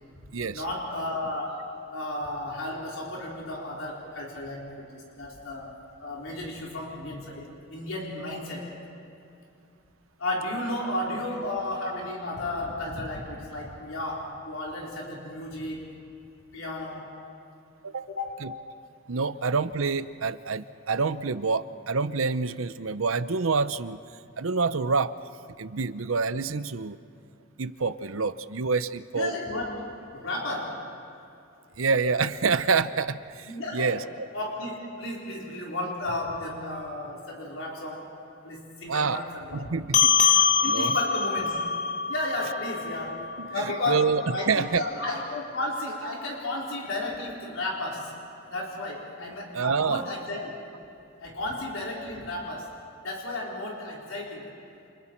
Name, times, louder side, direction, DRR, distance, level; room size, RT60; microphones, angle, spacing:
voice 1, 0.2-5.7 6.0-8.8 10.2-15.9 16.5-17.1 18.1-18.4 29.1-30.9 33.5-34.0 34.3-38.2 38.4-39.7 40.6-41.6 42.1-48.1 48.5-50.6 51.2-52.7 53.0-54.5, left 1 dB, 80° left, -3 dB, 4.0 m, -33 dB
voice 2, 19.1-24.0 24.4-25.1 25.6-27.0 27.6-29.3 31.8-34.0 38.9-39.2 39.5-40.9 43.4-44.8 49.5-50.0, right 4 dB, 85° right, 13 dB, 0.8 m, -27 dB
sound 1, 39.9-44.7, left 6 dB, 35° left, 1.0 m, -25 dB
29.5 x 29.0 x 4.5 m, 2.6 s
head